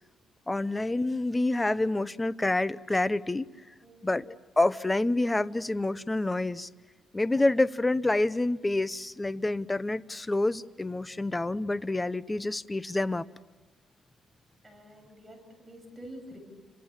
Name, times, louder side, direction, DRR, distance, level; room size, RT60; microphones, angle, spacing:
voice 1, 0.5-3.5 4.0-6.7 7.1-13.3, left 2 dB, 15° left, 15 dB, 0.8 m, -28 dB
voice 2, 14.6-16.4, equal, 15° right, 2 dB, 7.5 m, -47 dB
30.0 x 26.5 x 7.4 m, 1.3 s
cardioid pair, 120°, 0 cm